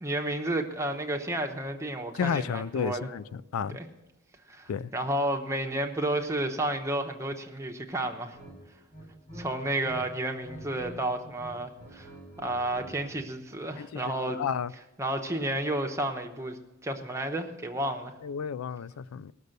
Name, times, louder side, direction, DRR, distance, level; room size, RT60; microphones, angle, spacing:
voice 1, 0.0-3.1 3.7-3.9 4.5-8.4 9.3-12.1 12.4-14.4 15.0-18.1, right 1 dB, 15° right, 1.0 m, -31 dB
voice 2, 2.2-3.8 4.7-4.9 13.8-14.0 14.4-14.7 18.2-19.3, left 7 dB, 80° left, 0.4 m, -32 dB
sound 1, 8.3-8.5 8.9-10.0 10.3-11.0 11.2-13.2, right 1 dB, 35° left, 6.0 m, -46 dB
18.0 x 6.7 x 6.6 m
head